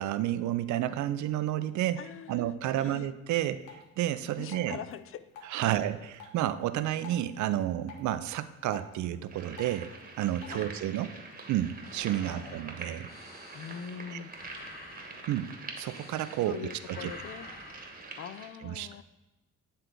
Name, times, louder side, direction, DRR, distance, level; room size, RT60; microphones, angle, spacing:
voice 1, 0.0-2.0 2.3-4.8 5.5-9.9 10.2-11.1 11.5-13.1 14.1-14.2 15.3-15.5 15.8-16.6 16.9-17.1 18.6-19.0, right 12 dB, 75° right, 13 dB, 0.5 m, -31 dB
voice 2, 2.0-3.1 4.4-5.2 5.6-5.8 10.5-10.7 12.2-12.6 13.5-14.6 16.4-17.6 18.2-19.0, left 8 dB, 45° left, 13 dB, 0.4 m, -43 dB
Drip, 3.6-10.6, left 4 dB, 85° left, 1.1 m, -53 dB
sound 1, 9.3-18.5, right 3 dB, 30° right, 1.1 m, -46 dB
sound 2, 11.8-16.6 16.9-18.0, left 2 dB, 30° left, 1.1 m, -49 dB
9.2 x 3.3 x 3.8 m, 1.1 s
cardioid pair, 90°, 30 cm